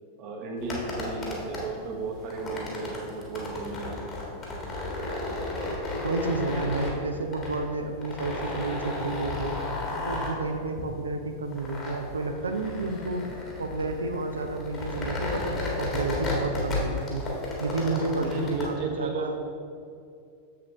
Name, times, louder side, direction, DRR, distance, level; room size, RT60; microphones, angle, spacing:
voice 1, 0.2-4.0 18.2-19.4, right 3 dB, 40° right, 1 dB, 1.0 m, -34 dB
sound 1, 0.6-18.7, left 2 dB, 30° left, 1.6 m, -33 dB
voice 2, 6.0-9.6 10.1-13.3 13.6-17.2 17.6-19.3, right 3 dB, 75° right, 5 dB, 0.5 m, -31 dB
7.1 x 6.7 x 3.1 m, 2.3 s
figure-of-eight pair, 90°, 0 cm